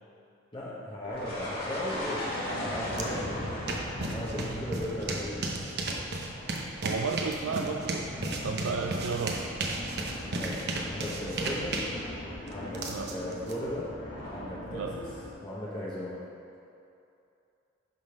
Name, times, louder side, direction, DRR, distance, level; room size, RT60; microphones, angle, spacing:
voice 1, 0.5-3.6 4.0-5.6 10.3-11.8 12.5-13.9 14.3-15.1 15.4-16.2, left 1 dB, 25° left, -7 dB, 1.1 m, -37 dB
sound 1, 1.0-15.3, left 1 dB, 50° left, 1.7 m, -39 dB
sound 2, 2.9-3.0 3.4-13.5, right 2 dB, 55° right, 0.8 m, -34 dB
voice 2, 6.6-9.5 12.9-13.1 14.7-15.0, right 5 dB, 85° right, 2 dB, 0.4 m, -33 dB
11.0 x 3.9 x 5.1 m, 2.6 s
head